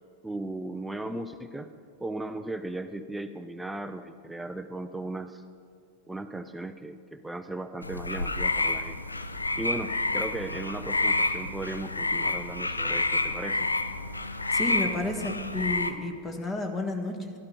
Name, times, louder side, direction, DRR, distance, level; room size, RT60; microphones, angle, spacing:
voice 1, 0.2-1.7 2.0-5.4 6.1-9.0 9.6-13.7, right 2 dB, 5° right, 9 dB, 0.4 m, -36 dB
sound 1, 7.8-15.9, left 2 dB, 80° left, 0.6 m, -29 dB
voice 2, 14.5-17.3, left 2 dB, 20° left, 4 dB, 1.5 m, -31 dB
12.0 x 12.0 x 5.7 m, 2.3 s
figure-of-eight pair, 90°, 0 cm